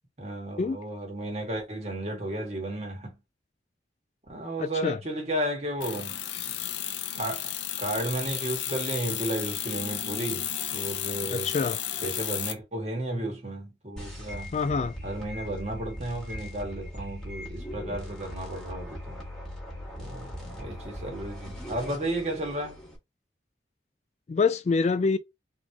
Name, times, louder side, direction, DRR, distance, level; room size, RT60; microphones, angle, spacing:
voice 1, 0.2-3.1 4.3-6.2 7.1-11.5 12.0-14.6 15.0-19.2 20.0-22.8, right 1 dB, 35° right, 1.6 m, -33 dB
voice 2, 4.6-5.0 11.3-11.8 14.5-15.0 24.3-25.2, left 4 dB, 40° left, 0.3 m, -26 dB
sound 1, 5.8-12.5, left 11 dB, 90° left, 0.6 m, -33 dB
sound 2, 14.0-23.0, left 1 dB, 5° left, 1.7 m, -40 dB
4.1 x 3.0 x 3.5 m
head